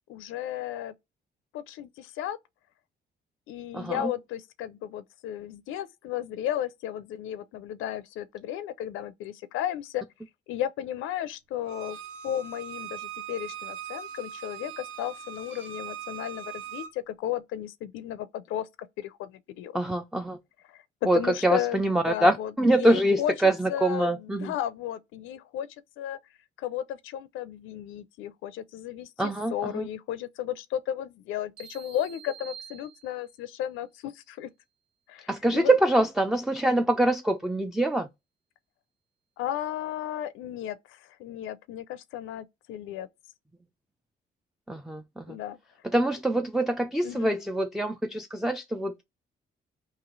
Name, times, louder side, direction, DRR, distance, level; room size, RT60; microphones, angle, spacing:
voice 1, 0.1-0.9 1.5-2.4 3.5-10.0 10.5-12.0 12.2-18.7 19.0-19.8 20.7-25.7 26.0-26.2 26.6-34.5 35.1-35.7 39.4-43.1 45.3-45.6 47.0-47.3, left 11 dB, 90° left, 0.4 m, -34 dB
voice 2, 3.7-4.1 19.7-20.4 21.0-24.5 29.2-29.9 35.3-38.1 44.7-45.4 45.9-49.0, right 1 dB, ahead, 0.3 m, -25 dB
Bowed string instrument, 11.7-16.9, right 9 dB, 75° right, 0.7 m, -40 dB
sound 1, 31.6-33.5, right 8 dB, 55° right, 1.4 m, -47 dB
3.0 x 2.7 x 3.7 m
cardioid pair, 90°, 20 cm